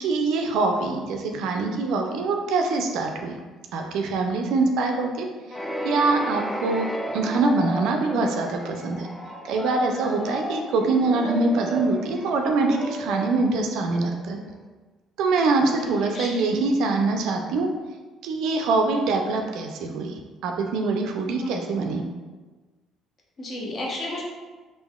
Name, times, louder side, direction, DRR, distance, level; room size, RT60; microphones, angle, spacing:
voice 1, 0.0-3.3 3.7-5.3 5.8-6.9 7.1-9.1 9.5-14.4 15.2-17.7 18.2-20.1 20.4-22.0, right 3 dB, 70° right, 3 dB, 0.3 m, -24 dB
sound 1, 5.5-14.3, equal, 15° left, 0.5 m, -33 dB
voice 2, 15.6-16.7 21.4-21.6 23.4-24.2, left 2 dB, 45° left, -2 dB, 0.8 m, -33 dB
3.4 x 2.5 x 2.2 m, 1.3 s
hypercardioid pair, 60°, 0 cm